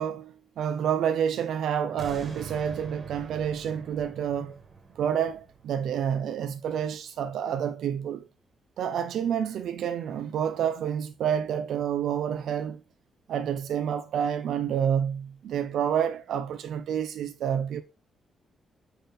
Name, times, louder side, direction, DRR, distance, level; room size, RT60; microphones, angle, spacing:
voice 1, 0.0-4.6 5.0-8.3 8.8-12.8 13.3-17.8, right 8 dB, 80° right, 0.6 m, -29 dB
sound 1, 2.0-7.1 7.5-7.6, right 4 dB, 35° right, 1.9 m, -45 dB
9.0 x 3.7 x 4.1 m
wide cardioid pair, 160°, 0 cm